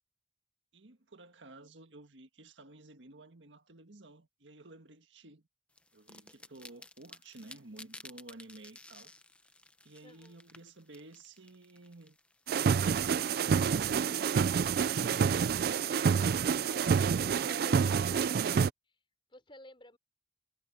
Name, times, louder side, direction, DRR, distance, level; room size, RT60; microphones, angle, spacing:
voice 1, 0.7-5.5 5.9-9.1 9.8-12.2, right 2 dB, 85° right, 1.7 m, -53 dB
sound 1, 5.8-12.6, left 2 dB, 5° left, 0.7 m, -54 dB
voice 2, 10.0-10.4 17.1-18.6 19.3-20.0, left 1 dB, 25° left, 5.4 m, -52 dB
sound 2, 12.5-18.7, right 6 dB, 55° right, 0.3 m, -28 dB
head